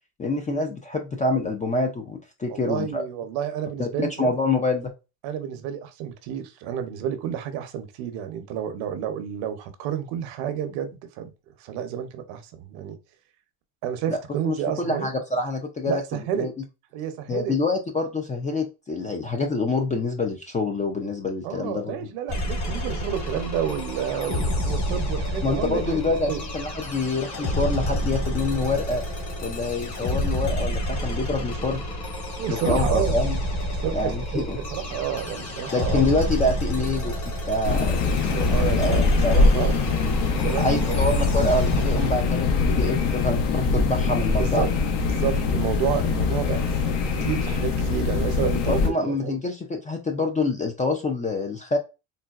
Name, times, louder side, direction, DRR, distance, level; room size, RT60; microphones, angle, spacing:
voice 1, 0.2-3.0 3.8-4.9 14.1-16.0 16.4-16.5 17.3-22.1 25.4-29.0 29.4-31.8 32.5-33.4 33.9-34.6 35.7-37.1 37.4-38.0 38.8-39.8 40.6-44.7 48.7-51.8, left 2 dB, 15° left, 0.4 m, -26 dB
voice 2, 2.5-4.3 5.2-11.3 11.6-13.0 13.8-15.1 15.9-16.5 16.9-17.6 21.4-26.4 32.4-33.2 33.8-36.1 38.3-39.8 40.4-41.0 44.3-44.7 45.0-49.4, right 9 dB, 65° right, 0.9 m, -30 dB
sound 1, 22.3-42.1, equal, 35° left, 1.2 m, -28 dB
sound 2, 37.6-48.9, left 4 dB, 55° left, 0.9 m, -23 dB
3.9 x 2.2 x 2.3 m
supercardioid pair, 105°, 49 cm